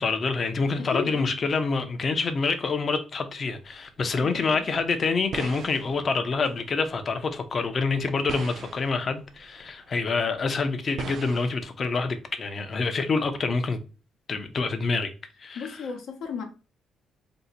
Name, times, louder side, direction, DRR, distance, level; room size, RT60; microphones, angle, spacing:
voice 1, 0.0-13.8 14.3-15.1 15.4-15.8, left 4 dB, 45° left, 0.5 m, -27 dB
voice 2, 0.8-1.3 4.1-4.6 15.5-16.4, left 6 dB, 85° left, 0.7 m, -34 dB
sound 1, 3.3-11.5, right 6 dB, 60° right, 0.3 m, -42 dB
2.7 x 2.1 x 4.0 m
cardioid pair, 90°, 0 cm